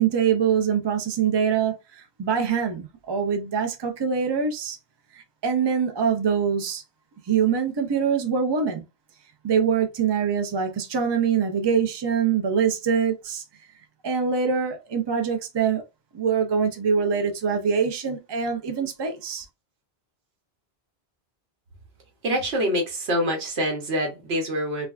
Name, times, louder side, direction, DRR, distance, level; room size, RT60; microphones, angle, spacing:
voice 1, 0.0-4.8 5.1-6.8 7.3-8.8 9.4-13.4 14.0-15.8 16.1-19.5, right 6 dB, 45° right, 0.3 m, -24 dB
voice 2, 22.2-24.9, equal, 90° right, 1.1 m, -25 dB
3.3 x 2.2 x 2.3 m
omnidirectional pair, 1.0 m